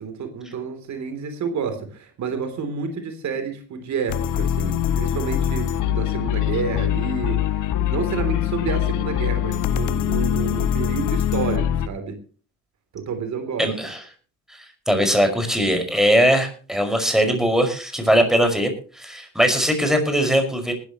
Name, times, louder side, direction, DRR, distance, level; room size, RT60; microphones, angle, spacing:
voice 1, 0.0-12.2 12.9-13.7, right 5 dB, 65° right, 8 dB, 3.3 m, -29 dB
sound 1, 4.1-11.9, left 10 dB, 85° left, 1.2 m, -23 dB
voice 2, 13.6-14.0 14.5-20.7, equal, ahead, 6 dB, 5.7 m, -20 dB
19.5 x 13.0 x 3.1 m, 0.38 s
cardioid pair, 90°, 30 cm